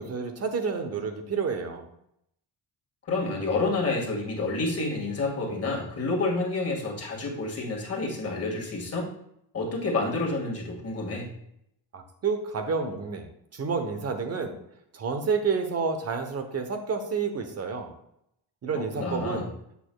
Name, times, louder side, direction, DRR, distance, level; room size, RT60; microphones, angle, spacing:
voice 1, 0.0-1.8 11.9-13.3 13.5-14.6 14.9-17.9 18.6-19.5, right 5 dB, 35° right, 6 dB, 0.9 m, -29 dB
voice 2, 3.1-9.1 9.5-11.3 18.7-19.5, left 3 dB, 35° left, -2 dB, 1.9 m, -29 dB
8.3 x 7.0 x 2.3 m, 0.75 s
cardioid pair, 160°, 42 cm